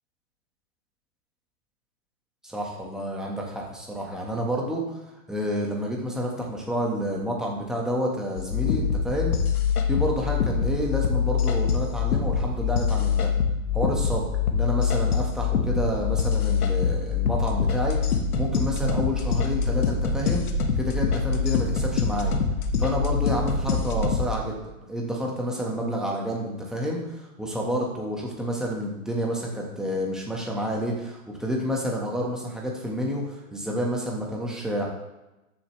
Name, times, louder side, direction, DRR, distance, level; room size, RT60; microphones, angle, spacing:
voice 1, 2.4-5.0 5.3-9.3 9.9-13.3 13.7-18.0 18.4-20.5 20.7-22.3 22.8-34.8, equal, ahead, -2 dB, 1.5 m, -29 dB
sound 1, 8.4-24.3, left 5 dB, 80° left, 1.5 m, -24 dB
13.0 x 7.0 x 3.3 m, 0.99 s
hypercardioid pair, 140°, 44 cm